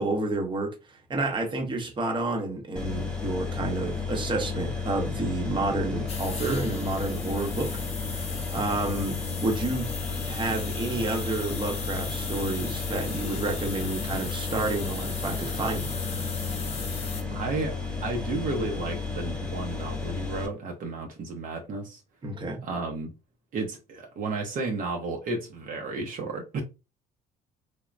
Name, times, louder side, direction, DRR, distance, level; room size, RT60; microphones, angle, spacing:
voice 1, 0.0-7.8 8.1-9.9 10.2-15.9 22.2-22.6, right 2 dB, 30° right, 0.8 m, -30 dB
sound 1, 2.8-20.5, left 4 dB, 5° left, 0.8 m, -33 dB
sound 2, 6.1-17.2, left 4 dB, 35° left, 0.7 m, -38 dB
voice 2, 17.3-22.0 22.6-23.1 23.5-26.6, right 3 dB, 55° right, 0.7 m, -32 dB
3.2 x 2.1 x 2.4 m
cardioid pair, 110°, 17 cm